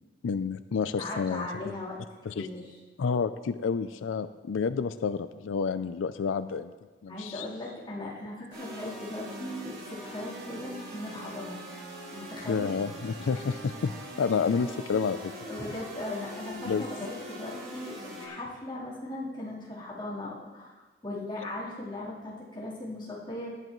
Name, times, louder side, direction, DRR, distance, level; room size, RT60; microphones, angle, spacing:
voice 1, 0.2-1.8 2.3-2.5 3.0-6.7 7.0-7.5 12.5-15.3 16.6-16.8, left 5 dB, 90° left, 12 dB, 0.4 m, -30 dB
voice 2, 0.9-2.0 2.3-2.8 7.1-11.6 12.1-12.7 14.9-15.0 15.5-23.5, left 1 dB, 25° left, -8 dB, 3.7 m, -38 dB
sound 1, 8.5-18.3, right 1 dB, 80° right, 4.9 m, -42 dB
18.0 x 11.0 x 3.1 m, 1.3 s
head